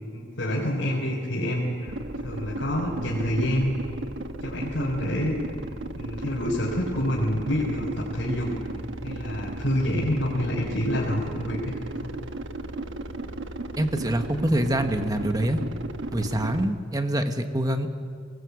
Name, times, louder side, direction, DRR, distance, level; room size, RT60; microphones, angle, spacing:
voice 1, 0.1-1.9 2.2-3.7 4.4-5.5 6.0-8.5 9.0-12.1, equal, 85° left, -5 dB, 4.2 m, -27 dB
sound 1, 1.9-16.7, right 1 dB, 75° right, 1.3 m, -36 dB
voice 2, 13.8-15.6 16.1-17.9, right 1 dB, 20° right, 7 dB, 1.2 m, -25 dB
22.0 x 19.0 x 8.3 m, 2.2 s
head